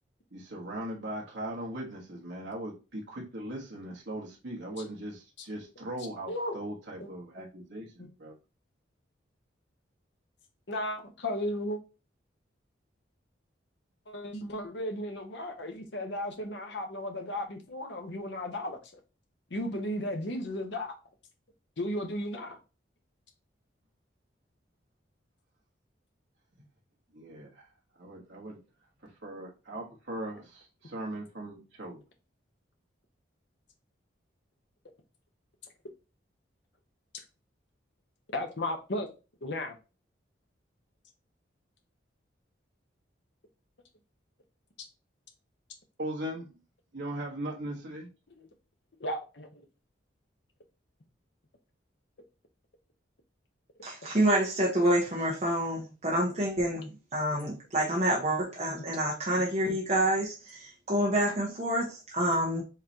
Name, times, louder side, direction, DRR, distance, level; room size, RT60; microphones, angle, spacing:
voice 1, 0.3-8.3 27.1-27.6 28.0-28.6 29.2-32.0 46.0-46.5 46.9-48.1, right 1 dB, 65° right, 1.2 m, -39 dB
voice 2, 10.7-11.8 14.1-19.0 19.5-21.0 21.8-22.6 38.3-39.1 39.4-39.7 48.4-48.5 49.0-49.6, left 1 dB, 65° left, 1.0 m, -35 dB
voice 3, 53.8-62.6, right 1 dB, 35° right, 1.1 m, -28 dB
5.6 x 3.3 x 2.8 m
head